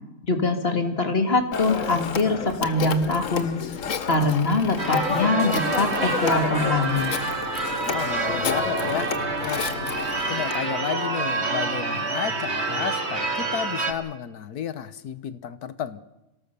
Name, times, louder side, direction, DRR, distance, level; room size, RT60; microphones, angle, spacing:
voice 1, 0.2-3.6 4.1-7.1, left 3 dB, 40° left, 6 dB, 2.4 m, -23 dB
Telephone, 1.5-10.6, left 6 dB, 60° left, 1.5 m, -30 dB
Church bell / Car / Alarm, 4.8-13.9, right 3 dB, 45° right, 2.5 m, -27 dB
voice 2, 7.9-9.1 9.4-9.7 10.3-16.0, left 8 dB, 90° left, 14 dB, 1.6 m, -32 dB
26.0 x 18.0 x 6.8 m, 0.96 s
omnidirectional pair, 1.6 m